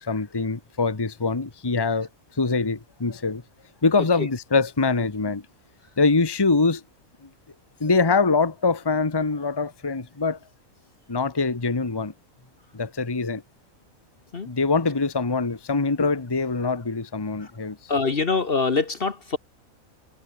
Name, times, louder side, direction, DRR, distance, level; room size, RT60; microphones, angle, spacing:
voice 1, 0.0-2.1 2.4-3.4 3.8-5.4 6.0-6.8 7.8-10.4 11.1-12.1 12.7-13.4 14.5-17.8, left 4 dB, 20° left, 1.2 m, -23 dB
voice 2, 17.9-19.4, left 4 dB, 45° left, 1.4 m, -24 dB
omnidirectional pair, 1.5 m